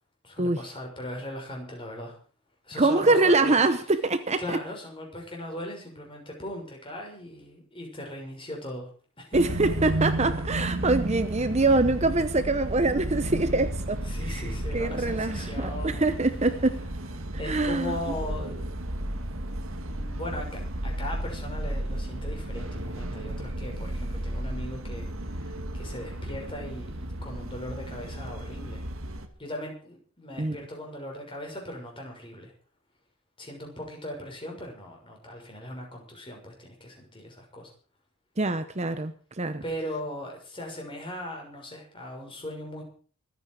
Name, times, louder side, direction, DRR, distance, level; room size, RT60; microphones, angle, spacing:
voice 1, 0.2-2.1 2.6-3.6 4.4-8.9 9.2-9.4 14.1-16.1 17.4-18.7 19.7-28.8 29.4-32.5 33.4-37.7 39.6-42.8, left 1 dB, 25° left, 6.4 m, -39 dB
voice 2, 2.8-4.6 9.3-16.9 17.4-18.0 30.4-30.6 38.4-39.6, right 2 dB, 30° right, 0.9 m, -24 dB
sound 1, 9.3-29.3, right 1 dB, 65° right, 2.0 m, -33 dB
25.0 x 9.6 x 4.9 m
head